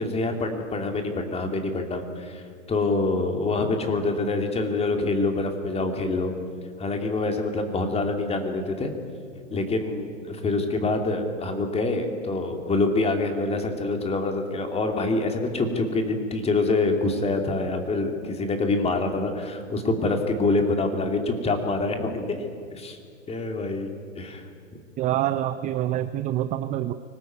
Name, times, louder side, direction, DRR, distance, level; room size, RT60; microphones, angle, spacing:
voice 1, 0.0-2.4 2.7-6.3 6.8-8.9 9.5-22.4 22.7-23.0 23.3-24.4, left 3 dB, 15° left, 5 dB, 2.8 m, -26 dB
voice 2, 25.0-26.9, right 12 dB, 20° right, 12 dB, 0.5 m, -26 dB
24.5 x 19.0 x 9.4 m, 2.2 s
hypercardioid pair, 130°, 39 cm